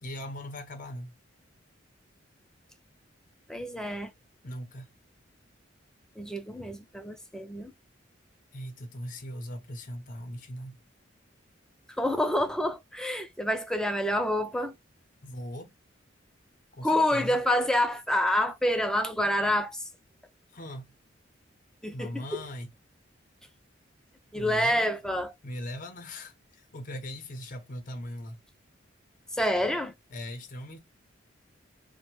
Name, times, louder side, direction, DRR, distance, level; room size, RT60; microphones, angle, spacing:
voice 1, 0.0-1.2 4.4-4.9 8.5-10.8 15.2-15.7 16.8-17.4 20.5-20.9 21.9-22.7 24.4-24.9 25.4-28.4 30.1-30.8, left 1 dB, 45° left, 0.6 m, -39 dB
voice 2, 3.5-4.1 6.2-7.7 12.0-14.8 16.8-19.9 21.8-22.4 24.3-25.3 29.3-29.9, left 1 dB, 5° left, 0.4 m, -27 dB
3.0 x 2.1 x 3.0 m
head